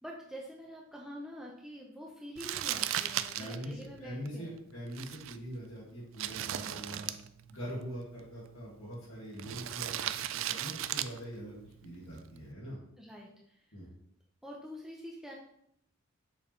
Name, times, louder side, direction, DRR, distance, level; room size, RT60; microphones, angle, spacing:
voice 1, 0.0-4.6 13.0-13.8 14.4-15.3, equal, ahead, -3 dB, 0.6 m, -46 dB
Crumpling crinkling, 2.4-12.5, right 12 dB, 65° right, 0.3 m, -39 dB
voice 2, 3.3-7.1 7.5-12.8 13.7-13.9, equal, 90° left, -7 dB, 2.1 m, -43 dB
6.5 x 5.0 x 3.2 m, 0.72 s
head